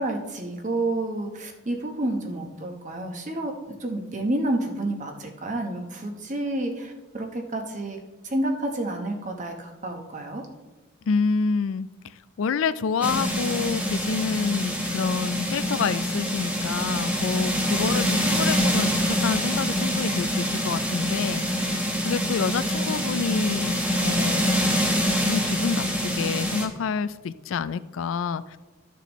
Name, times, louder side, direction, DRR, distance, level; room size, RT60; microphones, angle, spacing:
voice 1, 0.0-3.5 3.8-8.0 8.2-10.4, right 1 dB, 40° right, 3 dB, 1.1 m, -29 dB
voice 2, 11.1-11.9 12.4-21.7 22.0-24.6 25.2-28.6, left 5 dB, 80° left, 15 dB, 0.4 m, -28 dB
sound 1, 13.0-26.7, equal, 5° right, 1.1 m, -25 dB
12.5 x 6.8 x 3.1 m, 1.2 s
head